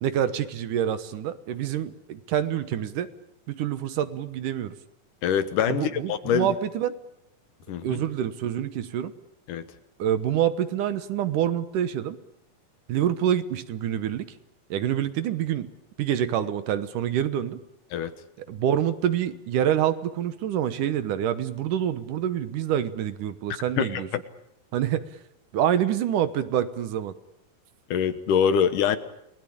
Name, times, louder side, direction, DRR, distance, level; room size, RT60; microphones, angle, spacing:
voice 1, 0.0-3.1 3.5-4.7 5.7-6.9 7.8-9.1 10.0-12.2 12.9-14.3 14.7-15.7 16.0-17.6 18.5-24.1 24.7-25.0 25.5-27.1, right 10 dB, 70° right, 12 dB, 2.5 m, -26 dB
voice 2, 5.2-6.6 7.7-8.0 9.5-9.7 17.9-18.1 23.8-24.0 27.9-29.0, left 8 dB, 70° left, 11 dB, 2.6 m, -24 dB
29.5 x 20.0 x 8.6 m, 0.80 s
omnidirectional pair, 4.0 m